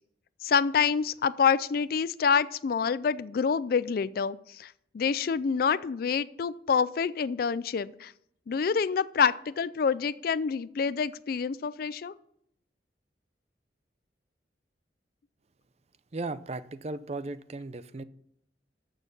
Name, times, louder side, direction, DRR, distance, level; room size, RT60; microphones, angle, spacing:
voice 1, 0.4-8.1 8.5-12.1, left 6 dB, 55° left, 17 dB, 0.4 m, -27 dB
voice 2, 16.1-18.0, right 2 dB, 35° right, 14 dB, 0.6 m, -36 dB
13.5 x 6.4 x 5.4 m, 0.72 s
head